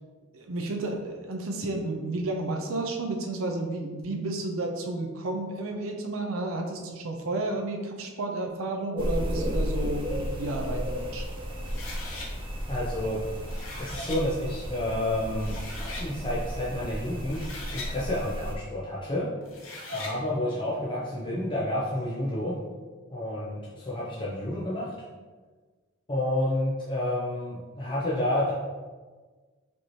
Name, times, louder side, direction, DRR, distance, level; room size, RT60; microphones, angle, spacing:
voice 1, 0.3-11.3, right 2 dB, 75° right, 2 dB, 0.5 m, -32 dB
sound 1, 9.0-18.5, equal, 25° right, 0.6 m, -33 dB
sound 2, 11.6-12.3 13.3-14.2 15.0-15.1 15.4-16.1 17.1-17.9 19.4-20.2, left 2 dB, 70° left, 0.9 m, -39 dB
voice 2, 12.7-13.4 13.8-15.6 15.8-17.4 17.7-19.3 19.9-22.5 23.1-24.9 26.1-28.5, left 1 dB, 25° left, -7 dB, 0.6 m, -30 dB
5.1 x 2.9 x 3.1 m, 1.4 s
head